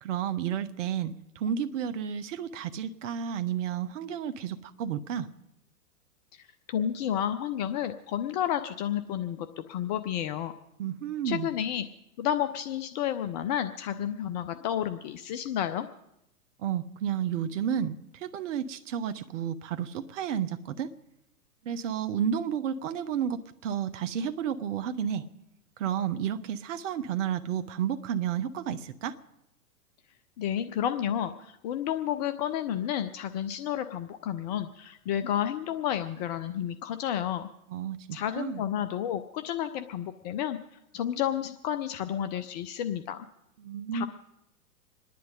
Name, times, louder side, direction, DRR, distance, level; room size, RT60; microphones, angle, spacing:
voice 1, 0.0-5.3 10.8-11.5 16.6-17.9 18.2-20.9 21.6-25.2 25.8-29.1 37.7-38.6 43.6-44.1, right 8 dB, 55° right, 10 dB, 1.0 m, -31 dB
voice 2, 6.4-10.5 11.2-11.9 12.2-15.9 30.4-37.5 38.1-40.6 40.9-43.3 43.9-44.1, left 10 dB, 30° left, 10 dB, 0.5 m, -31 dB
26.0 x 10.5 x 5.1 m, 0.88 s
figure-of-eight pair, 110°, 45 cm